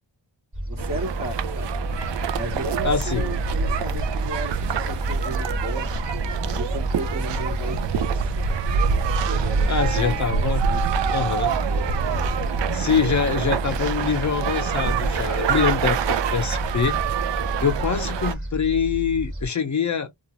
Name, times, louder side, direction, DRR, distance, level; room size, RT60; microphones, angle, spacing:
Gull seagull, 0.5-19.5, right 1 dB, 30° right, 1.2 m, -30 dB
voice 1, 0.7-1.7 2.3-5.9 6.4-8.3 9.2-11.2 11.7-12.1, right 2 dB, 50° right, 1.1 m, -35 dB
sound 1, 0.8-18.4, right 6 dB, 70° right, 0.5 m, -26 dB
voice 2, 2.8-3.3 9.7-10.6 11.1-11.5 12.2-12.3 12.7-16.0 16.3-17.0 17.6-20.1, left 6 dB, 40° left, 0.5 m, -24 dB
sound 2, 11.0-18.4, left 2 dB, 5° right, 0.8 m, -43 dB
2.3 x 2.2 x 2.8 m
cardioid pair, 70°, 45 cm